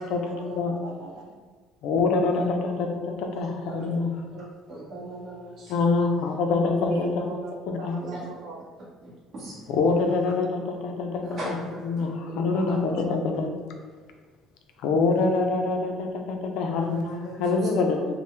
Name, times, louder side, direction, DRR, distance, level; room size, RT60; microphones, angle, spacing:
voice 1, 0.0-1.4 6.6-8.6 12.3-13.7 17.5-17.9, right 3 dB, 70° right, 0 dB, 0.7 m, -38 dB
voice 2, 1.8-4.1 5.7-7.2 7.8-8.0 9.7-11.6 11.8-13.5 14.8-18.2, left 3 dB, 60° left, 3 dB, 0.5 m, -25 dB
voice 3, 3.4-4.0 4.3-5.9 6.8-6.9 8.0-8.3 9.0-9.7 11.2-12.1 12.5-12.8 16.7-17.0 17.2-17.5, right 1 dB, 35° right, -8 dB, 1.3 m, -40 dB
4.4 x 2.2 x 3.2 m, 1.5 s
cardioid pair, 175°, 0 cm